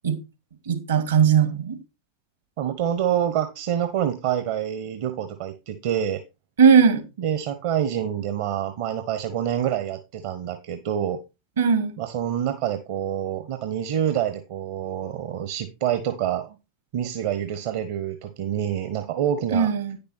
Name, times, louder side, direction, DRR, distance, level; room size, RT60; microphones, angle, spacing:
voice 1, 0.7-1.8 6.6-7.0 11.6-11.9 19.5-20.0, right 6 dB, 70° right, 2.2 m, -18 dB
voice 2, 2.6-6.2 7.2-11.2 12.0-16.6 16.9-19.7, right 10 dB, 55° right, 0.9 m, -27 dB
9.7 x 6.8 x 4.3 m
figure-of-eight pair, 85°, 0 cm